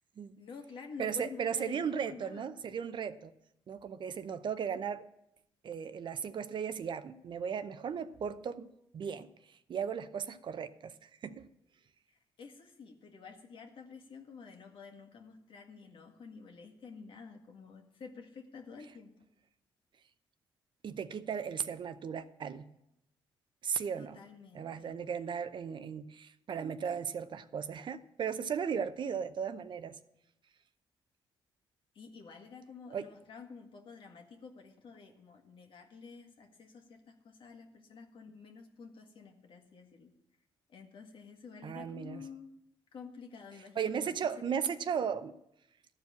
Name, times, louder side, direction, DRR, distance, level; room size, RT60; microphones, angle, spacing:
voice 1, 0.4-2.5 12.4-19.1 24.0-24.9 32.0-40.1 40.7-42.5 42.9-44.1 44.4-44.6, left 5 dB, 60° left, 1.8 m, -50 dB
voice 2, 1.0-3.3 3.7-5.1 5.6-8.7 8.9-9.3 9.7-10.9 11.2-11.5 20.8-22.7 23.6-24.2 24.5-30.0 32.9-33.1 41.6-42.2 43.8-45.3, right 7 dB, 55° right, 0.7 m, -36 dB
13.5 x 4.8 x 8.5 m
supercardioid pair, 70°, 10 cm